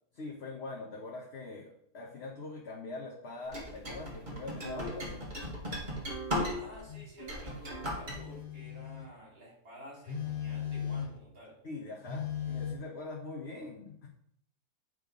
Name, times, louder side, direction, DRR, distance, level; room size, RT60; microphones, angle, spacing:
voice 1, 0.2-5.3 11.6-14.1, left 3 dB, 50° left, -2 dB, 1.2 m, -43 dB
sound 1, 3.5-6.8 7.2-8.2, equal, 30° right, 1.9 m, -36 dB
voice 2, 6.5-11.6, equal, 70° right, -3 dB, 3.3 m, -51 dB
Telephone, 6.9-7.1 8.1-9.1 10.1-11.3 12.1-12.7, left 8 dB, 70° left, 1.7 m, -37 dB
9.1 x 3.3 x 5.3 m, 0.69 s
omnidirectional pair, 1.6 m